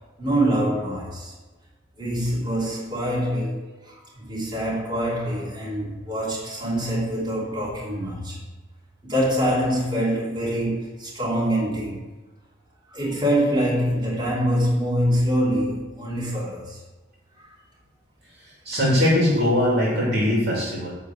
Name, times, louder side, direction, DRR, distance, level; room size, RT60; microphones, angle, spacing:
voice 1, 0.2-1.3 2.0-8.4 9.0-12.0 12.9-16.8 17.4-17.5, equal, 25° right, -7 dB, 3.0 m, -25 dB
voice 2, 18.7-20.9, left 1 dB, 55° right, -5 dB, 2.6 m, -21 dB
9.9 x 3.9 x 7.1 m, 1.2 s
head